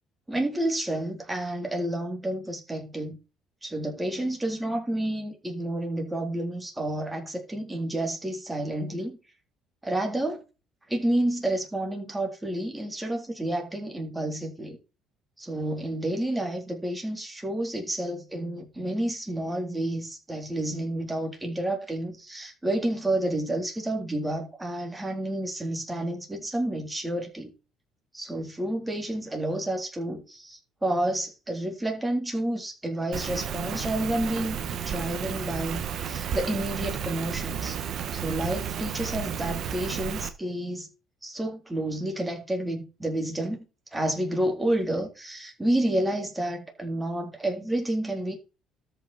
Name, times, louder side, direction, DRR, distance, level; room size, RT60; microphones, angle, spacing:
voice 1, 0.3-3.2 3.6-9.2 9.8-10.4 10.9-14.8 15.4-27.5 28.1-37.8 38.1-40.9 41.2-43.6 43.9-48.3, right 1 dB, 10° right, 3.5 m, -30 dB
Rain, 33.1-40.3, right 8 dB, 50° right, 1.6 m, -32 dB
13.0 x 5.9 x 4.2 m
cardioid pair, 135°, 0 cm